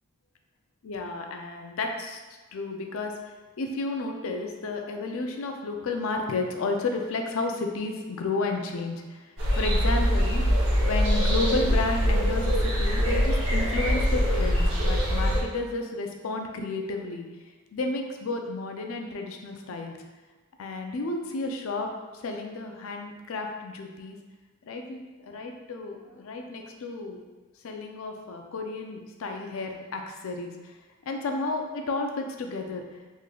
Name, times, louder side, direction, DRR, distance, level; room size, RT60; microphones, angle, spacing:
voice 1, 0.8-2.2 2.5-3.1 3.6-9.2 9.6-10.4 10.7-17.3 17.7-20.0 20.6-24.2 24.7-27.2 27.6-30.7 31.1-32.8, left 3 dB, 75° left, 3 dB, 0.4 m, -32 dB
sound 1, 9.4-15.4, equal, 60° right, 0.8 m, -23 dB
3.7 x 3.1 x 2.3 m, 1.3 s
head